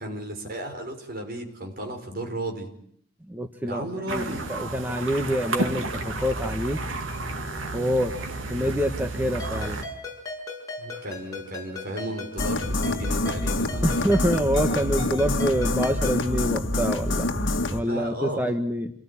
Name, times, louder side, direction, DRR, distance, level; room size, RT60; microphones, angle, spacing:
voice 1, 0.0-2.7 3.6-4.4 8.5-8.7 10.8-14.1 17.9-18.4, right 1 dB, 50° right, 4 dB, 5.5 m, -34 dB
voice 2, 3.3-6.8 7.7-8.2 8.5-9.8 13.8-18.9, equal, 10° right, 5 dB, 1.3 m, -26 dB
sound 1, 4.1-9.8, right 2 dB, 90° right, 2.7 m, -32 dB
Ringtone, 9.4-16.3, left 2 dB, 20° left, 7.3 m, -38 dB
sound 2, 12.4-17.8, left 2 dB, 65° left, 1.9 m, -26 dB
28.0 x 19.0 x 10.0 m, 0.69 s
head